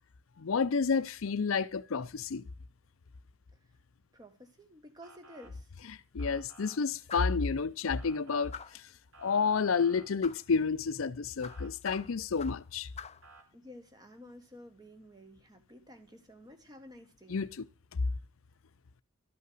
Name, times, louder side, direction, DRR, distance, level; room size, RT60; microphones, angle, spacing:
voice 1, 0.4-2.4 5.9-8.8 9.2-12.9 17.3-17.6, left 5 dB, 80° left, 0.6 m, -30 dB
voice 2, 4.1-5.7 13.5-17.4, equal, 20° right, 1.4 m, -52 dB
Motor vehicle (road) / Siren, 5.0-5.5 6.2-6.8 8.0-8.5 9.1-10.1 11.4-11.7 13.2-13.4, right 4 dB, 75° right, 3.0 m, -55 dB
sound 1, 7.1-7.4 8.5-8.9 10.2-10.5 11.4-12.7 13.0-13.3, left 7 dB, 30° left, 0.4 m, -45 dB
12.5 x 5.6 x 7.6 m
head